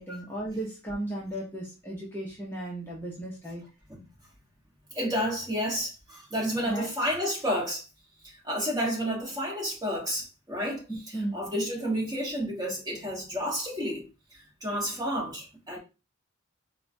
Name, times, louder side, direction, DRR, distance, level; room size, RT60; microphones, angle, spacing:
voice 1, 0.0-3.6 6.7-6.9 10.9-11.4, right 1 dB, 10° left, 0.6 m, -35 dB
voice 2, 4.9-7.8 8.2-15.8, equal, 20° right, 1.3 m, -31 dB
4.3 x 2.1 x 2.6 m
head